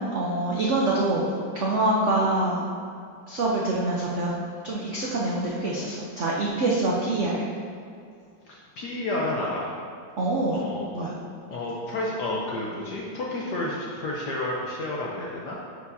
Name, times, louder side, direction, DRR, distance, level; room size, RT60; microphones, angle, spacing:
voice 1, 0.1-2.6 3.3-4.3 4.6-7.4 10.2-10.6 10.9-11.1, right 2 dB, 75° right, -4 dB, 0.6 m, -25 dB
voice 2, 8.4-9.7 10.5-10.9 11.5-15.6, left 1 dB, 65° left, -4 dB, 1.2 m, -30 dB
11.0 x 4.7 x 2.7 m, 2.4 s
omnidirectional pair, 2.3 m